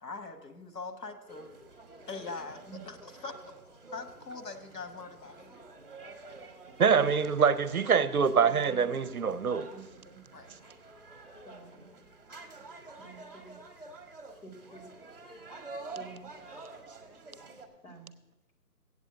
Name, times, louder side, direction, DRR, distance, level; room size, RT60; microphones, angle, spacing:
voice 1, 0.0-1.5 2.1-3.5 3.9-5.6 10.3-10.5, left 4 dB, 85° left, 6 dB, 1.4 m, -42 dB
sound 1, 1.3-17.7, right 3 dB, 35° right, 1.1 m, -49 dB
voice 2, 6.8-9.7, right 6 dB, 65° right, 15 dB, 0.6 m, -25 dB
voice 3, 9.7-10.2 11.5-11.9 13.0-13.6 14.4-14.9 16.0-16.3 17.8-18.1, right 3 dB, 65° left, 3 dB, 2.1 m, -50 dB
8.2 x 7.7 x 6.9 m, 1.0 s
figure-of-eight pair, 170°, 47 cm